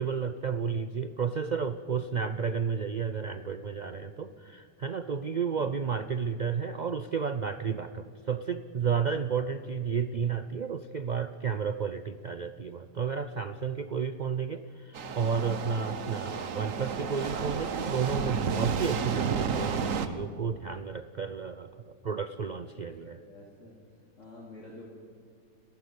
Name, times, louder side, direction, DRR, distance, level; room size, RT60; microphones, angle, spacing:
voice 1, 0.0-23.2, right 6 dB, 85° right, 11 dB, 0.4 m, -32 dB
sound 1, 14.9-20.1, right 6 dB, 60° right, 1.4 m, -32 dB
voice 2, 22.3-22.8 23.2-23.8 24.2-24.8, left 2 dB, 55° left, -3 dB, 3.2 m, -51 dB
29.5 x 12.0 x 8.1 m, 2.2 s
omnidirectional pair, 1.6 m